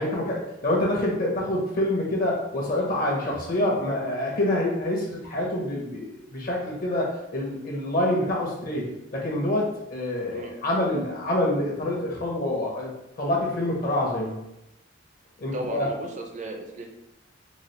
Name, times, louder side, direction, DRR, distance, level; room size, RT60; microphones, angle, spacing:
voice 1, 0.0-14.3 15.4-15.9, left 1 dB, 45° left, -2 dB, 0.8 m, -26 dB
voice 2, 15.5-16.9, right 1 dB, 40° right, 2 dB, 0.5 m, -35 dB
3.9 x 2.4 x 3.1 m, 0.89 s
head